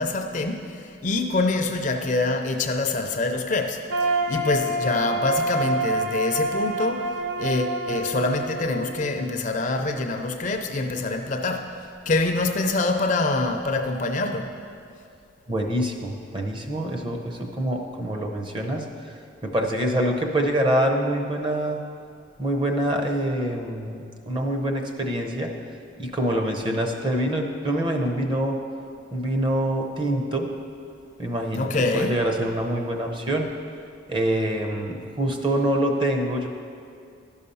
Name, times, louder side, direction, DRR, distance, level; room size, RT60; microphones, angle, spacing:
voice 1, 0.0-14.6 31.5-32.2, left 2 dB, 40° left, 5 dB, 0.5 m, -25 dB
sound 1, 3.9-9.8, right 2 dB, 75° right, 0.6 m, -27 dB
voice 2, 15.5-18.9 19.4-21.8 22.4-25.5 26.0-28.6 29.1-30.5 31.2-33.5 34.1-36.5, right 1 dB, 25° right, 2 dB, 0.7 m, -25 dB
12.0 x 5.6 x 5.5 m, 2.4 s
head